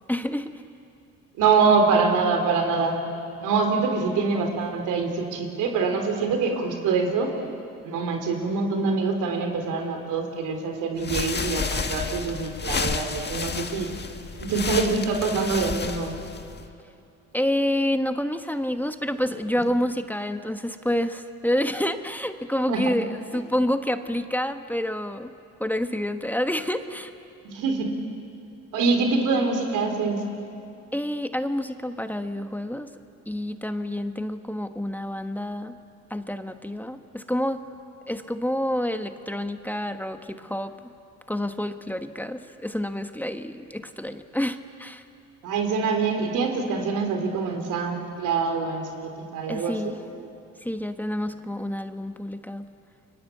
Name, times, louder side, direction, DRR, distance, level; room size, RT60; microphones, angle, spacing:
voice 1, 0.1-0.5 17.3-25.3 25.6-27.1 30.9-32.9 33.3-35.8 36.1-37.6 38.1-40.9 41.3-45.0 49.5-49.9 50.6-52.7, left 1 dB, 5° left, 8 dB, 1.2 m, -28 dB
voice 2, 1.4-3.0 3.4-7.3 7.8-13.9 14.4-16.2 22.7-22.9 27.4-27.9 28.7-30.2 45.4-50.0, right 4 dB, 90° right, 5 dB, 3.6 m, -25 dB
sound 1, 11.0-16.7, left 5 dB, 35° left, 1.8 m, -31 dB
30.0 x 23.0 x 8.4 m, 2.6 s
cardioid pair, 90°, 30 cm